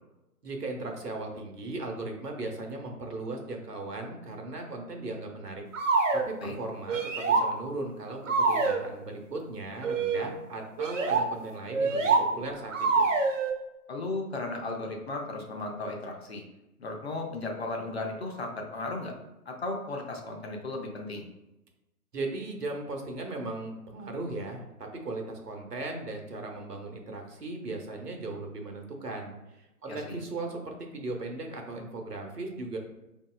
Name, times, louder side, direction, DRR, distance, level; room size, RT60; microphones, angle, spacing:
voice 1, 0.4-5.6 6.1-13.0 22.1-32.8, right 2 dB, 80° right, 2 dB, 0.9 m, -37 dB
sound 1, 5.7-6.3 6.9-7.5 8.3-8.8 9.8-10.3 10.8-11.3 11.7-12.3 12.7-13.5, right 4 dB, 55° right, 0.6 m, -25 dB
voice 2, 13.9-16.4 16.8-19.1 19.5-21.3 29.9-30.2, left 2 dB, 45° left, 1 dB, 0.6 m, -35 dB
5.2 x 2.7 x 2.2 m, 0.95 s
figure-of-eight pair, 135°, 47 cm